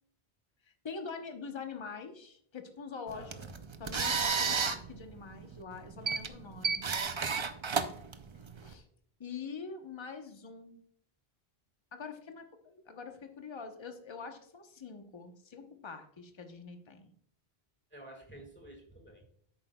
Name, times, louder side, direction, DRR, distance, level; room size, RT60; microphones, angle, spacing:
voice 1, 0.8-3.3 3.8-6.9 8.6-8.8 9.2-10.8 11.9-17.1, left 5 dB, 30° left, 5 dB, 0.9 m, -44 dB
voice 2, 3.1-3.5 6.6-6.7 17.9-19.2, right 1 dB, 10° left, 1 dB, 1.8 m, -51 dB
sound 1, 3.1-8.7, right 5 dB, 40° right, 0.5 m, -33 dB
10.5 x 8.5 x 2.2 m, 0.65 s
omnidirectional pair, 1.1 m